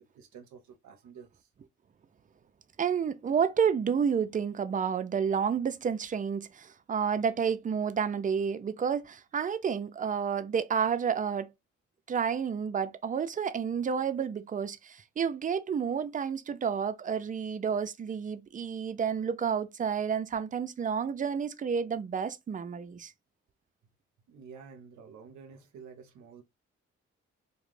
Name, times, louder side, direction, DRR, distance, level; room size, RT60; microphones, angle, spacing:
voice 1, 0.0-1.5 24.3-26.4, right 6 dB, 75° right, 0.6 m, -50 dB
voice 2, 2.8-11.5 12.1-23.1, right 7 dB, 30° right, 0.4 m, -30 dB
2.4 x 2.1 x 3.2 m
supercardioid pair, 50°, 29 cm